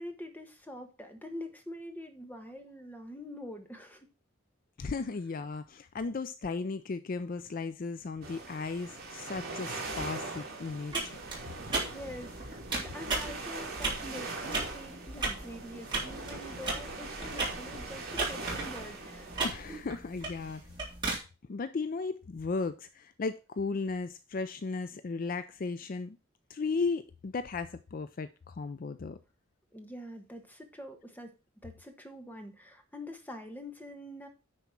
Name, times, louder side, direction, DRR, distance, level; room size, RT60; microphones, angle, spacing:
voice 1, 0.0-4.1 11.9-19.3 29.7-31.3 31.6-34.3, left 1 dB, 10° left, 1.3 m, -45 dB
voice 2, 4.8-11.2 19.4-20.6 21.5-26.2 26.5-29.2, left 4 dB, 45° left, 0.4 m, -35 dB
sound 1, 8.2-19.8, right 3 dB, 50° right, 2.9 m, -41 dB
sound 2, 10.9-21.2, right 3 dB, 25° right, 3.8 m, -36 dB
9.8 x 4.2 x 5.8 m
head